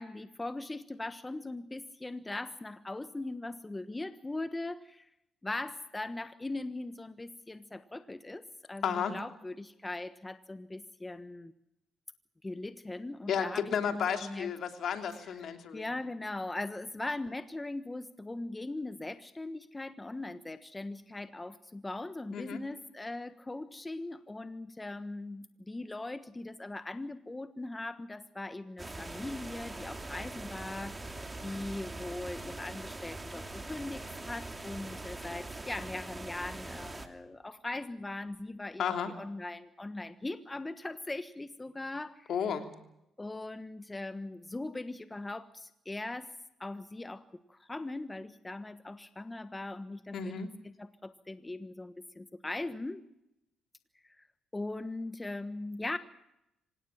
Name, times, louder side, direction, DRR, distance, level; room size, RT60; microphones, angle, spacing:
voice 1, 0.0-5.1 5.4-11.5 12.4-14.5 15.7-42.3 43.2-46.3 46.6-47.2 47.5-50.4 50.8-53.0 54.0-54.2 54.5-56.0, left 2 dB, 15° left, 11 dB, 1.3 m, -40 dB
voice 2, 8.8-9.2 13.3-15.9 22.3-22.6 38.8-39.1 42.3-42.7 50.1-50.5, left 7 dB, 65° left, 6 dB, 3.0 m, -32 dB
sound 1, 28.8-37.1, right 2 dB, 15° right, 2.8 m, -42 dB
26.0 x 17.5 x 7.3 m, 0.83 s
cardioid pair, 90°, 0 cm